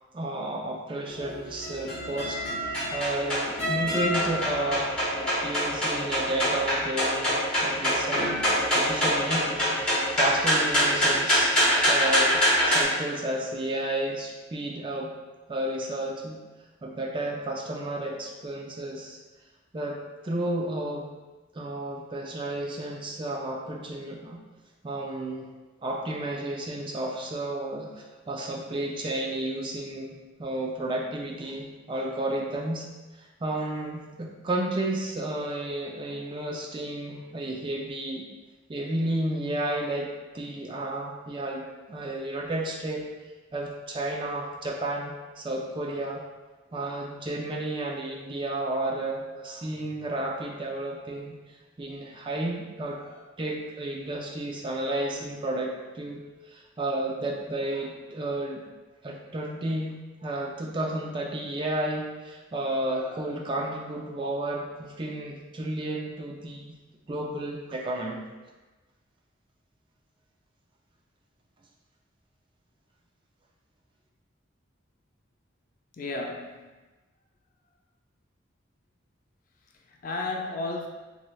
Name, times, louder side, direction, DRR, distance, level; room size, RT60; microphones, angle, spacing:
voice 1, 0.1-9.7 10.1-11.5 11.9-15.1 15.5-16.4 16.8-19.2 19.7-20.0 20.2-21.1 21.5-24.4 24.8-25.5 25.8-32.9 33.2-38.3 38.7-40.1 40.3-43.0 43.5-46.2 46.7-51.4 51.8-56.2 56.5-58.7 59.0-60.0 60.2-66.8 67.1-68.2, right 1 dB, 25° right, -1 dB, 0.4 m, -32 dB
sound 1, 1.1-12.8, equal, 5° left, 1.1 m, -25 dB
voice 2, 75.9-76.8 79.8-80.9, left 2 dB, 45° left, 1 dB, 0.4 m, -33 dB
3.9 x 3.1 x 2.2 m, 1.2 s
head